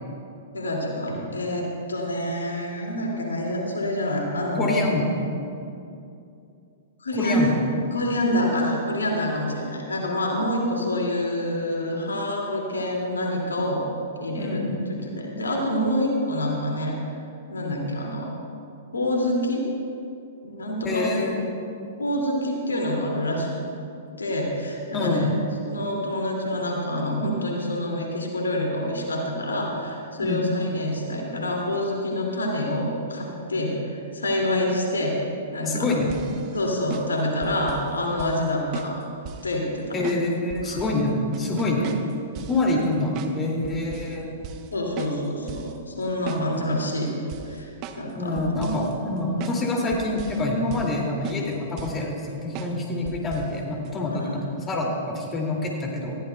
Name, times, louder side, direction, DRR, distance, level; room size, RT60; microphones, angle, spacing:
voice 1, 0.5-4.9 7.0-7.5 7.9-13.9 14.2-17.0 17.5-18.3 18.9-19.6 20.4-21.3 22.0-23.5 24.2-25.3 25.6-35.2 35.5-36.0 36.5-39.0 39.4-39.9 40.7-40.8 41.6-41.8 44.7-47.7 48.0-48.8 54.1-54.4, left 1 dB, 85° left, 0 dB, 2.3 m, -27 dB
voice 2, 4.5-5.1 7.1-7.6 14.4-14.9 20.8-21.4 24.9-25.3 30.2-30.4 35.7-36.1 39.9-41.9 42.5-44.3 48.2-56.2, left 2 dB, 20° left, -1 dB, 2.4 m, -26 dB
sound 1, 36.1-37.9 38.2-38.4 38.7-39.5 40.0-41.0 41.3-42.6 43.1-43.4 43.6-44.2 44.4-44.7 45.0-45.7 46.0-46.8 47.3-48.1 48.4-48.9 49.4-49.6 49.9-50.5 50.7-51.0 51.2-52.1 52.5-52.8 53.0-53.5 53.8-53.9, right 8 dB, 40° right, 0.9 m, -38 dB
20.0 x 14.5 x 2.3 m, 2.6 s
hypercardioid pair, 115°, 0 cm